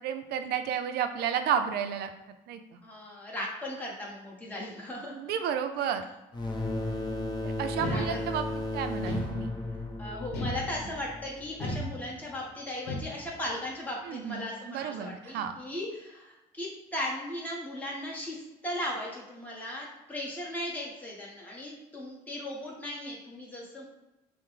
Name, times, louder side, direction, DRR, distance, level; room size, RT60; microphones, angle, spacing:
voice 1, 0.0-2.1 2.5-2.8 5.1-6.0 7.4-8.5 8.7-9.5 14.1-15.6, right 8 dB, 75° right, 8 dB, 0.4 m, -32 dB
voice 2, 2.8-5.2 7.8-8.2 10.0-23.8, left 1 dB, 10° left, -4 dB, 1.1 m, -37 dB
sound 1, 6.3-11.8, left 2 dB, 25° left, 0.7 m, -35 dB
sound 2, 7.8-8.6 9.0-9.8 10.3-11.1 11.6-12.4 12.9-13.5, left 1 dB, 80° left, 0.8 m, -36 dB
5.5 x 2.1 x 3.2 m, 0.97 s
cardioid pair, 110°, 17 cm